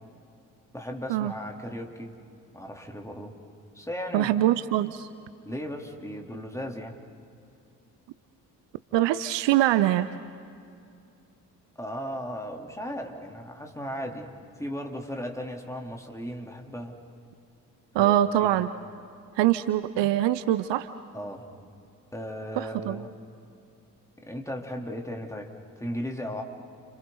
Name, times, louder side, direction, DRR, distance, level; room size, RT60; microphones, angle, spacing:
voice 1, 0.7-2.2 2.5-3.4 3.7-4.3 5.4-7.0 11.8-17.0 18.0-18.1 18.4-18.5 21.1-21.4 22.1-23.1 24.2-26.4, equal, 5° left, 2 dB, 3.3 m, -36 dB
voice 2, 4.1-5.1 8.9-10.1 17.9-18.7 19.3-20.9 22.5-23.0, right 13 dB, 60° right, 14 dB, 0.8 m, -23 dB
30.0 x 27.5 x 4.0 m, 2.5 s
hypercardioid pair, 45°, 49 cm